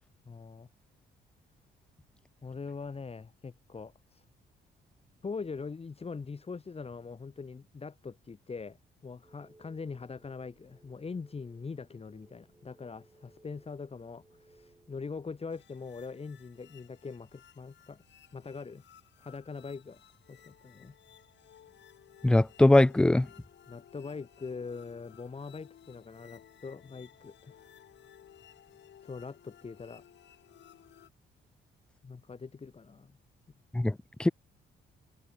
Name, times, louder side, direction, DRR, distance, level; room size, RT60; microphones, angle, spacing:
voice 1, 0.2-0.7 2.4-4.2 5.2-8.8 9.0-18.0 18.3-18.8 19.2-20.0 20.3-20.9 23.7-27.6 29.0-30.0 32.0-33.2, left 4 dB, 30° left, 2.5 m, -42 dB
sound 1, 9.2-15.0, right 2 dB, 15° right, 5.5 m, -62 dB
sound 2, 15.5-31.1, left 10 dB, 65° left, 3.7 m, -58 dB
voice 2, 22.2-23.3 33.7-34.3, left 1 dB, 5° left, 0.3 m, -22 dB
cardioid pair, 90°, 20 cm